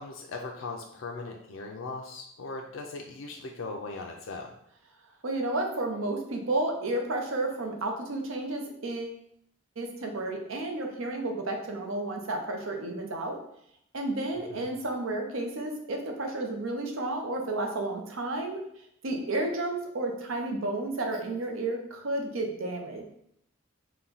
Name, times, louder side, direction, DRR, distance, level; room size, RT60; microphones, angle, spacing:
voice 1, 0.0-4.5 14.5-14.7, left 3 dB, 75° left, 1 dB, 0.5 m, -39 dB
voice 2, 5.2-9.2 9.8-13.4 13.9-18.6 19.0-23.0, right 2 dB, 85° right, 3 dB, 0.7 m, -32 dB
4.2 x 2.2 x 3.9 m, 0.72 s
head